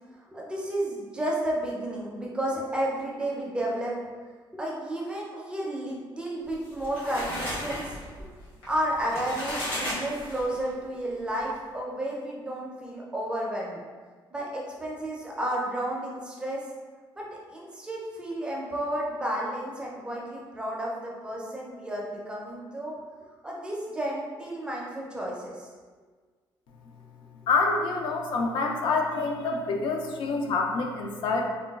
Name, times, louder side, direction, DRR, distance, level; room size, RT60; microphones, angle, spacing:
voice 1, 0.3-3.9 4.5-8.0 8.7-13.8 14.3-16.6 17.2-22.9 23.4-25.7, right 1 dB, 10° right, -4 dB, 0.4 m, -32 dB
sound 1, 6.5-10.7, equal, 90° left, 1.1 m, -35 dB
voice 2, 27.5-31.5, left 3 dB, 65° left, 2 dB, 0.4 m, -27 dB
3.8 x 2.2 x 2.3 m, 1.5 s
cardioid pair, 175°, 9 cm